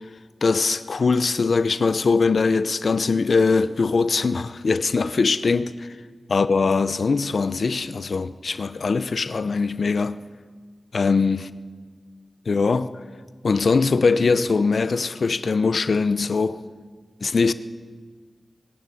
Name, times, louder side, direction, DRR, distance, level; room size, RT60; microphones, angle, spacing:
voice 1, 0.4-5.9 6.3-10.2 10.9-11.5 12.5-12.9 13.4-16.6 17.2-17.5, left 4 dB, 70° left, 0.8 m, -21 dB
19.5 x 16.5 x 9.9 m
cardioid pair, 60°, 0 cm